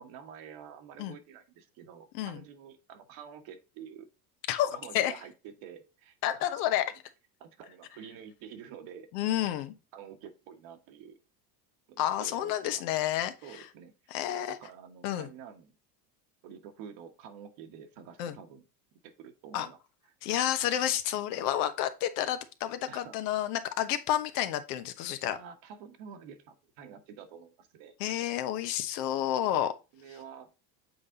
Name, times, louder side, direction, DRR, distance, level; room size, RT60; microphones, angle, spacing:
voice 1, 0.0-4.1 4.7-6.4 7.4-9.1 9.9-11.2 11.9-12.8 13.4-13.9 14.5-15.7 16.4-18.6 19.0-19.8 22.9-23.2 25.3-28.0 29.9-30.6, right 7 dB, 65° right, 1.4 m, -48 dB
voice 2, 4.5-5.1 6.2-6.8 9.1-9.7 12.0-13.3 14.1-14.6 15.0-15.3 18.2-18.4 19.5-19.7 20.2-25.4 28.0-29.7, left 12 dB, 75° left, 1.1 m, -30 dB
7.5 x 4.1 x 3.7 m
supercardioid pair, 95°, 48 cm